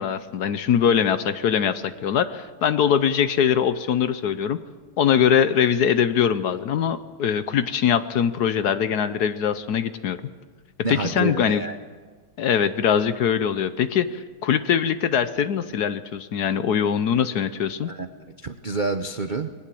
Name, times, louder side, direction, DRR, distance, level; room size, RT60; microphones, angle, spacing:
voice 1, 0.0-4.6 5.0-10.2 10.9-11.6 12.4-17.9, left 8 dB, 65° left, 12 dB, 1.1 m, -22 dB
voice 2, 10.8-11.8 17.8-18.1 18.4-19.5, right 3 dB, 75° right, 8 dB, 0.4 m, -28 dB
21.0 x 18.5 x 7.7 m, 1.5 s
omnidirectional pair, 2.2 m